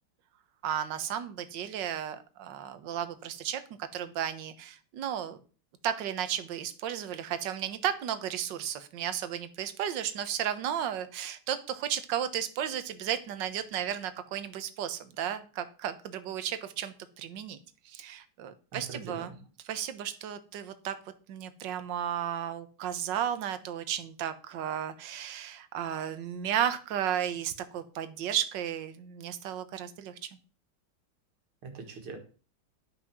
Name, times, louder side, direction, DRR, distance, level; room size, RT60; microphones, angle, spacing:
voice 1, 0.6-3.6 3.9-5.4 5.8-17.6 17.8-19.4 19.6-20.9 21.3-30.3, right 10 dB, 65° right, 10 dB, 1.6 m, -34 dB
voice 2, 18.7-19.4 31.6-32.2, right 4 dB, 85° right, 4 dB, 2.7 m, -42 dB
11.0 x 5.9 x 6.0 m, 0.37 s
omnidirectional pair, 2.3 m